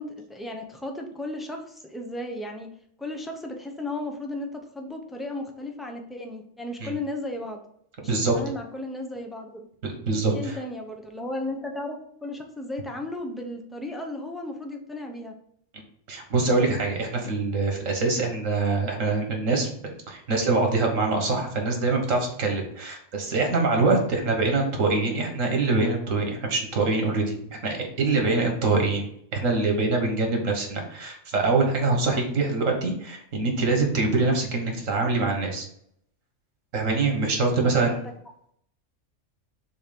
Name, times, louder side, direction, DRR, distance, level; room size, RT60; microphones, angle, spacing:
voice 1, 0.0-2.7 3.0-7.6 8.0-9.7 10.1-15.3 37.6-38.1, left 1 dB, ahead, 2 dB, 0.5 m, -35 dB
voice 2, 8.0-8.4 10.0-10.6 16.1-19.7 20.1-29.1 29.3-35.7 36.7-37.9, right 3 dB, 85° right, 2 dB, 1.7 m, -24 dB
6.5 x 2.9 x 5.2 m, 0.68 s
omnidirectional pair, 1.3 m